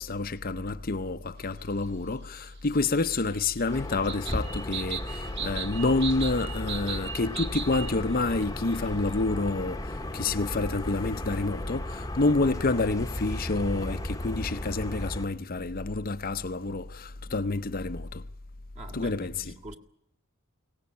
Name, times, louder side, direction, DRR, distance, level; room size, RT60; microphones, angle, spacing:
voice 1, 0.0-18.2 18.9-19.3, left 3 dB, 45° left, 0.8 m, -28 dB
sound 1, 2.8-8.0 8.3-8.4 8.7-8.9, right 7 dB, 55° right, 1.3 m, -38 dB
sound 2, 3.7-15.3, left 1 dB, 15° left, 1.1 m, -35 dB
voice 2, 18.7-19.8, right 2 dB, 35° right, 2.1 m, -44 dB
22.5 x 18.5 x 8.5 m
head